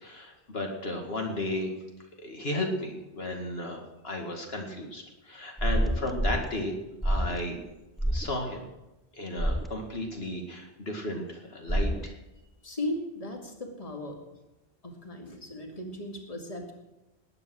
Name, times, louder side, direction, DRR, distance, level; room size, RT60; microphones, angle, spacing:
voice 1, 0.0-1.7 2.2-6.7 7.0-7.6 8.0-8.7 9.1-12.1, left 1 dB, 75° left, 2 dB, 2.4 m, -34 dB
sound 1, 5.6-6.5 7.0-7.4 8.0-8.3 9.4-9.7 11.7-12.1, right 1 dB, ahead, 0.3 m, -27 dB
voice 2, 12.6-14.2 14.8-16.7, left 1 dB, 35° left, 2 dB, 2.4 m, -37 dB
19.5 x 9.3 x 6.3 m, 1.0 s
omnidirectional pair, 1.1 m